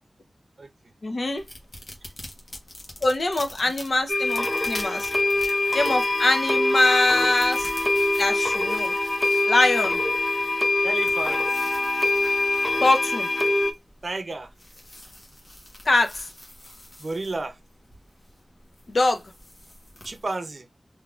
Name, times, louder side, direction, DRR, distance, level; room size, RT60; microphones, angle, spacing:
voice 1, 1.0-1.4 3.0-5.1 5.7-7.7 8.2-8.9 9.5-10.0 12.8-13.3 15.9-16.3 18.9-19.2, left 2 dB, 70° left, 0.8 m, -23 dB
sound 1, 1.4-20.2, left 1 dB, 45° left, 1.2 m, -45 dB
sound 2, 4.1-13.7, left 2 dB, 10° left, 0.5 m, -24 dB
voice 2, 10.8-11.4 14.0-14.5 17.0-17.6 20.0-20.7, right 2 dB, 60° right, 0.6 m, -31 dB
3.4 x 2.8 x 2.4 m
wide cardioid pair, 65°, 0 cm